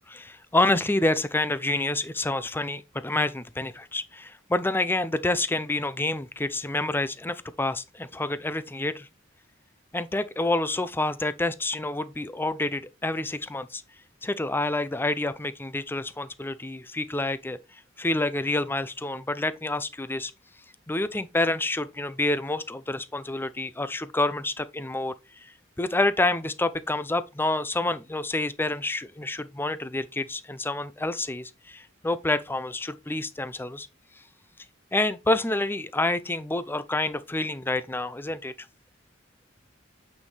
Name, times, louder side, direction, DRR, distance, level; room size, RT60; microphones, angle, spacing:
voice 1, 0.1-9.1 9.9-13.8 14.2-20.3 20.9-25.5 25.8-33.9 34.9-38.5, left 2 dB, 10° left, 0.5 m, -28 dB
8.7 x 5.3 x 3.3 m
head